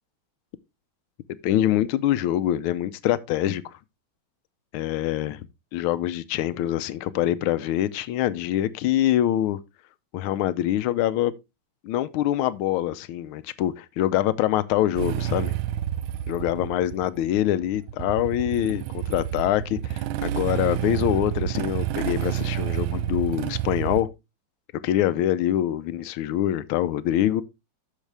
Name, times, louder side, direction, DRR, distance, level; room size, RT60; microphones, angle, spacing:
voice 1, 1.4-3.6 4.7-5.5 5.7-9.6 10.1-11.3 11.8-15.5 16.3-24.1 24.8-27.4, left 12 dB, 80° left, 1.5 m, -24 dB
Motorcycle / Engine starting, 15.0-24.0, right 12 dB, 80° right, 1.4 m, -29 dB
8.4 x 6.4 x 3.3 m
omnidirectional pair, 2.3 m